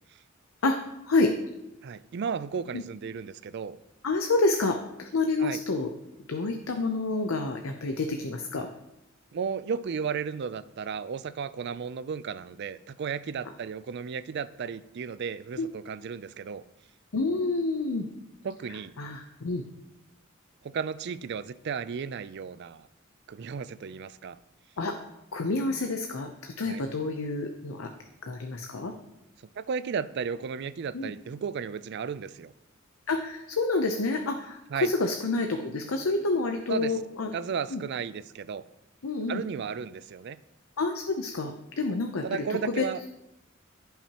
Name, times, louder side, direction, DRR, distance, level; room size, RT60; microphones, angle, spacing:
voice 1, 1.8-3.8 5.4-5.6 9.3-16.6 18.4-18.9 20.6-22.9 23.3-24.4 26.6-26.8 29.6-32.5 34.7-34.9 36.7-37.0 37.3-38.6 39.3-40.4 42.2-43.0, right 6 dB, 55° right, 15 dB, 0.4 m, -34 dB
voice 2, 4.0-5.9 6.3-8.7 15.6-15.7 17.1-18.1 19.0-19.6 24.8-24.9 25.3-27.9 28.2-28.9 30.9-31.1 33.1-37.3 37.7-37.8 39.0-39.4 40.8-42.4 42.8-42.9, left 3 dB, 80° left, 5 dB, 0.7 m, -28 dB
15.0 x 5.8 x 2.9 m, 0.89 s
head